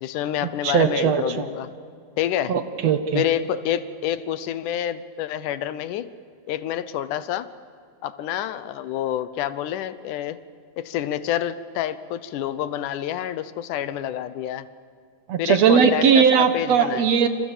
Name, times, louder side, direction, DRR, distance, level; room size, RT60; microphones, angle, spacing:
voice 1, 0.0-1.7 2.2-2.5 3.1-6.1 6.5-7.5 8.0-10.4 10.8-14.7 15.4-16.2 16.5-17.1, left 11 dB, 80° left, 14 dB, 2.3 m, -28 dB
voice 2, 0.6-1.5 2.5-3.2 15.3-17.3, right 6 dB, 60° right, 9 dB, 2.1 m, -19 dB
28.0 x 28.0 x 7.4 m, 2.2 s
omnidirectional pair, 3.7 m